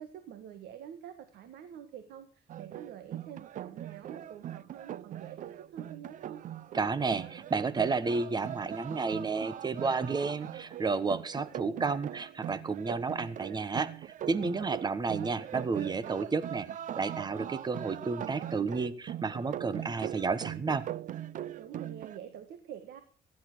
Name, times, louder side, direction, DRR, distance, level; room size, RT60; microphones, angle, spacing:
voice 1, 0.0-6.4 10.3-10.6 11.1-12.0 14.6-14.7 21.6-23.0, right 9 dB, 75° right, 9 dB, 1.7 m, -47 dB
sound 1, 2.5-22.2, right 11 dB, 50° right, 0.6 m, -41 dB
voice 2, 6.7-16.7 17.0-20.8, right 4 dB, 25° right, 16 dB, 1.2 m, -31 dB
15.5 x 10.5 x 6.2 m, 0.43 s
cardioid pair, 110°, 17 cm